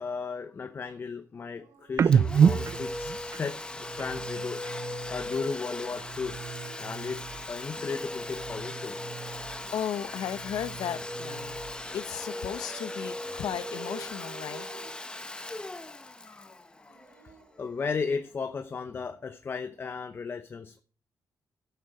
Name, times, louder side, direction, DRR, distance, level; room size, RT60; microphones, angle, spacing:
voice 1, 0.0-4.6 5.1-6.4 6.8-7.2 7.5-9.0 9.6-9.7 10.0-10.1 15.9-17.0 17.2-17.3 17.6-20.8, left 5 dB, 40° left, 0.9 m, -35 dB
Dog, 1.4-3.3 5.7-8.1 9.4-11.1 12.2-15.8 16.7-18.4 19.6-19.9, right 9 dB, 85° right, 1.1 m, -53 dB
sound 1, 1.9-5.5 5.8-7.7 7.9-9.8 10.2-12.0, right 7 dB, 50° right, 0.6 m, -30 dB
Domestic sounds home sounds, 2.1-17.6, left 2 dB, 15° left, 1.0 m, -38 dB
voice 2, 9.7-11.6 11.9-14.7, left 9 dB, 80° left, 0.9 m, -35 dB
14.5 x 9.5 x 4.8 m
cardioid pair, 120°, 6 cm